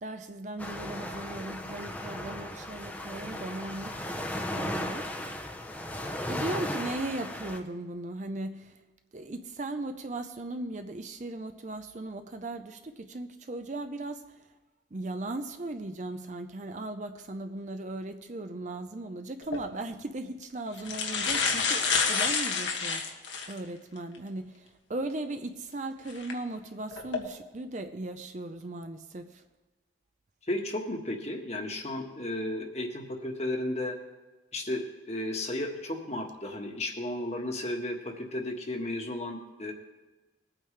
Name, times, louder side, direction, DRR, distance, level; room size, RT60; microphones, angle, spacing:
voice 1, 0.0-5.1 6.1-8.8 9.1-14.4 14.9-29.4, right 2 dB, 40° right, 7 dB, 0.6 m, -38 dB
sound 1, 0.6-7.6, left 1 dB, 10° left, 0.8 m, -36 dB
sound 2, 19.4-19.6 20.4-20.5 20.8-23.6 24.1-24.2 26.1-26.3 26.9-27.2, left 5 dB, 85° left, 1.5 m, -28 dB
voice 2, 30.5-34.0 34.5-39.7, left 1 dB, 35° left, 2 dB, 1.4 m, -34 dB
20.5 x 8.8 x 3.3 m, 1.2 s
head